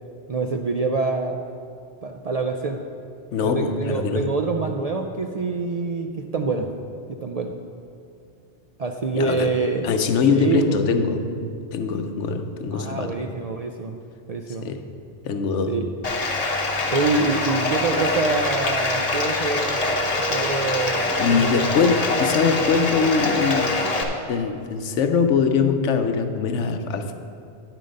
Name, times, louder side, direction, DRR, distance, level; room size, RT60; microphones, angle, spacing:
voice 1, 0.3-1.4 2.0-2.8 3.4-6.7 7.2-7.5 8.8-9.9 10.3-10.8 12.7-14.0 14.3-14.7 15.7-15.9 16.9-20.0 20.3-21.7, right 3 dB, 55° right, 3 dB, 0.4 m, -26 dB
voice 2, 3.3-4.3 9.1-9.5 9.8-11.3 11.7-13.1 14.6-14.8 15.2-15.8 21.2-23.8 24.3-27.1, left 5 dB, 90° left, 7 dB, 1.1 m, -22 dB
Bathtub (filling or washing), 16.0-24.0, left 2 dB, 35° left, 0.9 m, -24 dB
9.9 x 7.5 x 5.3 m, 2.4 s
omnidirectional pair, 1.2 m